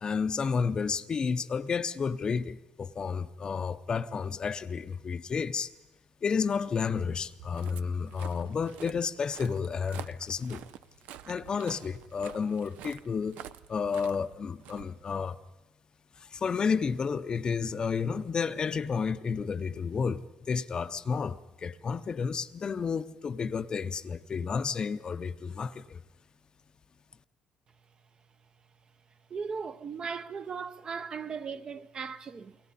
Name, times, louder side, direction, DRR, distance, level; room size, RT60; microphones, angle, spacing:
voice 1, 0.0-5.7 6.2-10.6 11.3-13.4 13.7-15.4 16.2-26.0, left 5 dB, 35° left, 0.7 m, -31 dB
Walk footsteps, 7.2-15.5, right 11 dB, 85° right, 0.6 m, -49 dB
voice 2, 29.3-32.6, right 5 dB, 40° right, 0.8 m, -37 dB
29.5 x 23.0 x 4.2 m
cardioid pair, 115°, 2 cm